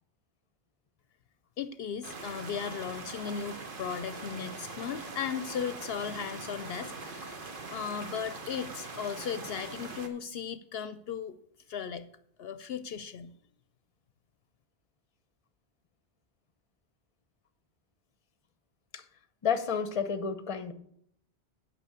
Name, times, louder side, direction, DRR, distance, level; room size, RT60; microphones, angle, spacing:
voice 1, 1.6-7.4 7.7-11.4 11.7-12.1 12.4-13.3, left 7 dB, 70° left, 12 dB, 0.8 m, -36 dB
sound 1, 2.0-10.1, right 3 dB, 55° right, 1.3 m, -42 dB
voice 2, 19.4-20.7, left 6 dB, 35° left, 11 dB, 0.8 m, -30 dB
9.1 x 5.9 x 8.2 m, 0.71 s
omnidirectional pair, 1.1 m